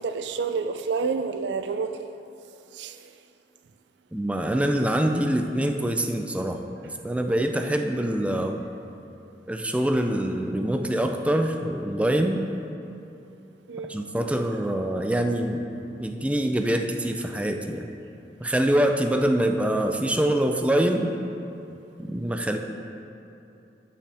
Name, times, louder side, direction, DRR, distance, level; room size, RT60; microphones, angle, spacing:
voice 1, 0.0-2.1 2.7-3.1 10.0-10.2 13.7-14.0 14.9-15.0 15.5-16.3 16.8-17.1, right 5 dB, 75° right, 8 dB, 0.4 m, -31 dB
voice 2, 4.1-8.6 9.5-12.5 13.9-15.6 16.0-17.9 18.4-21.1 22.0-22.6, right 1 dB, 5° right, 4 dB, 0.4 m, -25 dB
14.0 x 5.7 x 3.4 m, 2.8 s
head